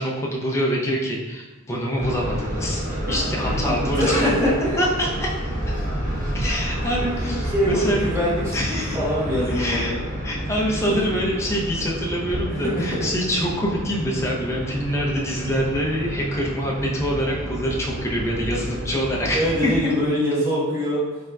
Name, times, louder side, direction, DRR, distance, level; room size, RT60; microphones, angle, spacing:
voice 1, 0.0-4.3 4.8-5.3 6.3-8.1 8.5-9.0 9.5-9.9 10.2-19.9, equal, 15° left, -3 dB, 0.6 m, -25 dB
sound 1, 1.9-19.8, equal, 40° right, 1.2 m, -29 dB
voice 2, 3.4-4.8 7.1-10.0 10.9-11.0 12.5-13.1 19.3-21.0, equal, 15° right, -7 dB, 0.9 m, -24 dB
4.2 x 3.7 x 2.2 m, 1.1 s
head